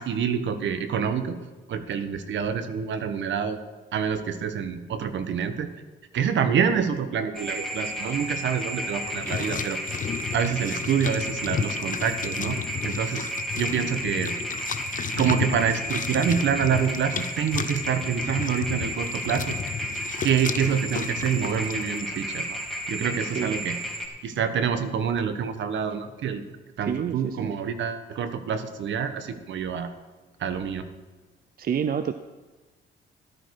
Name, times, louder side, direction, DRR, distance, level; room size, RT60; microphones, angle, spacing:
voice 1, 0.0-1.3 1.7-3.6 3.9-5.7 6.1-9.8 10.3-13.3 13.6-14.3 15.1-19.5 20.2-22.6 22.9-23.8 24.2-26.4 26.8-29.9 30.4-30.8, right 7 dB, 70° right, 10 dB, 1.3 m, -27 dB
sound 1, 7.3-24.1, equal, ahead, 3.4 m, -33 dB
sound 2, 9.0-22.0, left 7 dB, 40° left, 0.7 m, -33 dB
voice 2, 23.4-23.7 26.8-27.5 31.6-32.1, right 8 dB, 50° right, 11 dB, 0.6 m, -28 dB
14.0 x 12.0 x 4.9 m, 1.3 s
cardioid pair, 90°, 20 cm